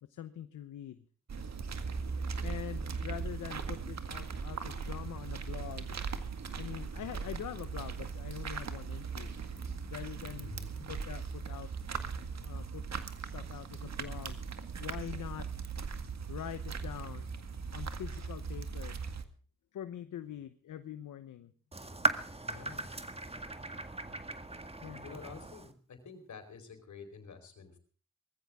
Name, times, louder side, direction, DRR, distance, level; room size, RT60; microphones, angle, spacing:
voice 1, 0.0-1.0 2.4-6.0 6.5-9.3 9.9-10.6 10.9-11.7 12.3-12.9 13.2-14.5 14.8-15.5 16.3-17.3 17.7-19.0 19.7-21.5 24.8-25.0, left 10 dB, 90° left, 11 dB, 0.9 m, -44 dB
sound 1, 1.3-19.2, right 5 dB, 60° right, 2.0 m, -39 dB
voice 2, 10.4-10.9 22.5-22.9 25.0-27.8, left 5 dB, 70° left, 7 dB, 4.5 m, -49 dB
sound 2, 21.7-25.7, right 2 dB, 20° right, 1.9 m, -37 dB
20.0 x 15.0 x 3.6 m, 0.43 s
cardioid pair, 60°, 30 cm